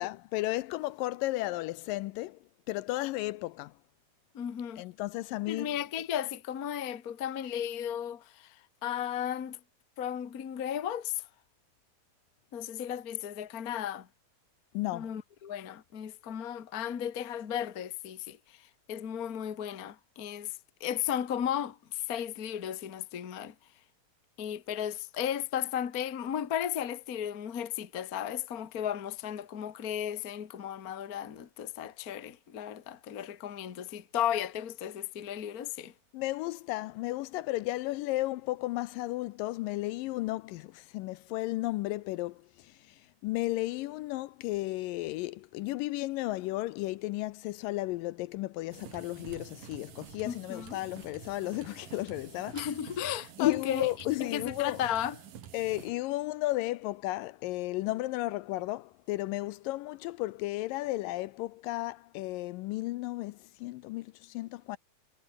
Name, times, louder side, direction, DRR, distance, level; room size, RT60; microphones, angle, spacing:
voice 1, 0.0-2.4 2.7-3.7 4.8-5.7 14.7-15.1 36.1-52.6 53.4-54.8 55.5-64.8, left 18 dB, 80° left, 2.2 m, -34 dB
voice 2, 4.3-4.8 5.5-9.6 10.0-11.2 12.5-14.1 14.9-23.5 24.4-35.9 50.2-50.8 52.5-53.9 54.2-55.2, left 10 dB, 45° left, 1.2 m, -35 dB
sound 1, 48.7-55.9, right 9 dB, 70° right, 3.7 m, -48 dB
omnidirectional pair, 4.1 m